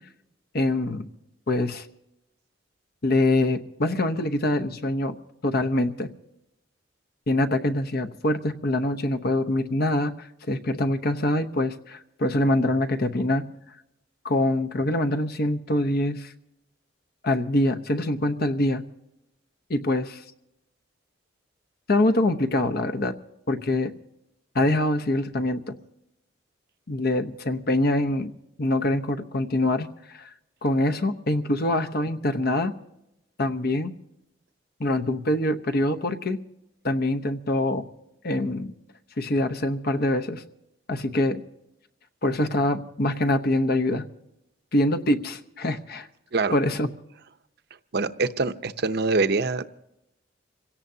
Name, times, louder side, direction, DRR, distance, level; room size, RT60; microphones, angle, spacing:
voice 1, 0.5-1.1 1.5-1.9 3.0-5.2 5.4-6.1 7.3-13.4 14.2-16.3 17.2-18.8 19.7-20.2 21.9-23.1 23.5-23.9 24.5-25.7 26.9-28.3 28.6-30.3 30.6-32.7 33.4-33.9 34.8-36.4 36.8-37.8 38.2-38.7 39.2-40.4 40.9-41.4 42.2-44.1 44.7-46.1 46.5-46.9, left 1 dB, 55° left, 8 dB, 0.9 m, -24 dB
voice 2, 47.9-49.7, right 3 dB, 60° right, 11 dB, 0.7 m, -24 dB
27.0 x 17.0 x 2.8 m, 0.86 s
head